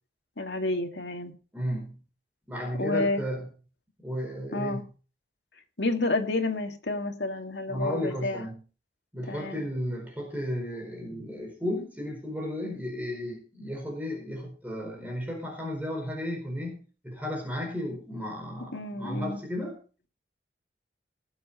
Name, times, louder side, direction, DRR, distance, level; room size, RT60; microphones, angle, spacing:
voice 1, 0.4-1.3 2.8-3.2 4.5-4.8 5.8-8.5 9.3-9.6 18.7-19.4, left 2 dB, 75° left, 4 dB, 2.2 m, -30 dB
voice 2, 1.5-2.0 2.5-3.5 4.0-4.8 7.7-8.6 9.1-19.8, equal, 10° right, 0 dB, 4.7 m, -34 dB
19.0 x 7.4 x 4.2 m, 0.36 s
head